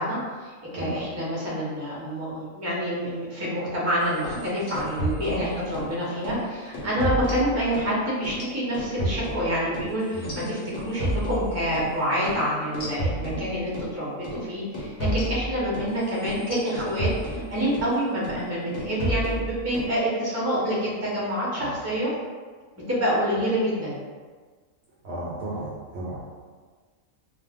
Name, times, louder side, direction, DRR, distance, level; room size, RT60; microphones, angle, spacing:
voice 1, 0.0-22.1 22.9-23.9, equal, 15° right, -7 dB, 0.5 m, -27 dB
sound 1, 4.1-5.9 6.2-6.4 6.7-7.9 8.2-11.9 12.2-12.4 12.7-13.9 14.2-14.4 14.7-17.9 18.2-18.5 18.7-19.9, equal, 60° left, 0.9 m, -31 dB
voice 2, 25.0-26.2, right 1 dB, 65° right, -7 dB, 0.7 m, -35 dB
2.3 x 2.3 x 3.4 m, 1.5 s
omnidirectional pair, 1.4 m